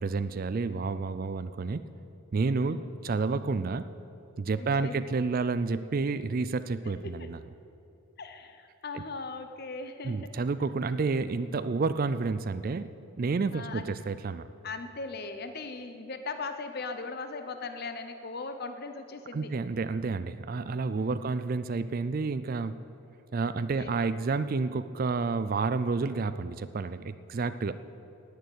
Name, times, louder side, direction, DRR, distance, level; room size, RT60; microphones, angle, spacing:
voice 1, 0.0-1.8 2.3-3.8 4.4-7.4 8.9-9.0 10.0-12.9 13.2-14.5 19.3-22.8 23.3-27.7, right 4 dB, 40° right, 13 dB, 0.3 m, -30 dB
voice 2, 2.5-2.8 4.6-5.0 7.0-7.3 8.2-10.3 13.5-13.9 14.6-19.5 20.9-21.4 23.5-24.0, left 3 dB, 45° left, 8 dB, 0.7 m, -39 dB
18.5 x 6.7 x 8.1 m, 2.8 s
head